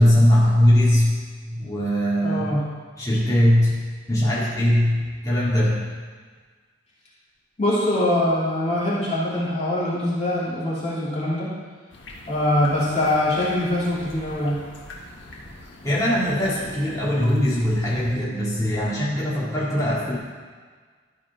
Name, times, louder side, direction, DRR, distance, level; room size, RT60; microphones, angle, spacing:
voice 1, 0.0-2.5 3.0-3.7 4.1-5.9 15.8-20.2, equal, 20° left, -9 dB, 2.3 m, -20 dB
voice 2, 2.2-2.6 7.6-11.5 12.3-14.6, left 1 dB, 35° left, -8 dB, 2.4 m, -23 dB
sound 1, 11.9-18.2, left 1 dB, 70° left, 1.4 m, -43 dB
12.5 x 4.9 x 4.7 m, 1.5 s
head